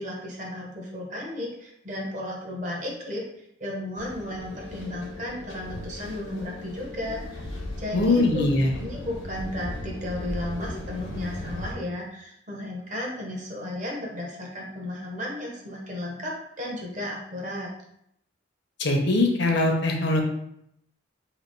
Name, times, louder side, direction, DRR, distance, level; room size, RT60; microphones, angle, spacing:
voice 1, 0.0-3.3 3.6-8.4 8.8-17.7, left 1 dB, 40° right, -1 dB, 0.9 m, -34 dB
sound 1, 4.0-11.7, left 1 dB, 80° left, 1.1 m, -37 dB
voice 2, 7.9-8.7 18.8-20.2, left 2 dB, 55° left, 2 dB, 0.7 m, -22 dB
3.0 x 2.9 x 4.4 m, 0.75 s
head